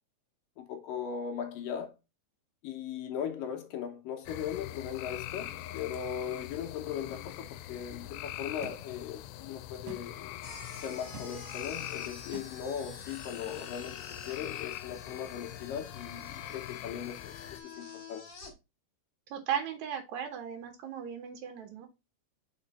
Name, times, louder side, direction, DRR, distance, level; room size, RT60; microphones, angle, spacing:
voice 1, 0.6-2.0 2.6-10.4 10.8-18.3, left 8 dB, 70° left, 2.2 m, -38 dB
sound 1, 4.3-17.6, left 13 dB, 90° left, 2.7 m, -43 dB
sound 2, 8.6-8.8 9.9-10.0 11.1-11.3 12.3-12.5, right 4 dB, 65° right, 1.8 m, -44 dB
sound 3, 10.4-18.5, left 4 dB, 45° left, 2.3 m, -49 dB
voice 2, 19.3-21.9, right 8 dB, 90° right, 1.6 m, -36 dB
5.9 x 4.3 x 4.1 m
omnidirectional pair, 4.7 m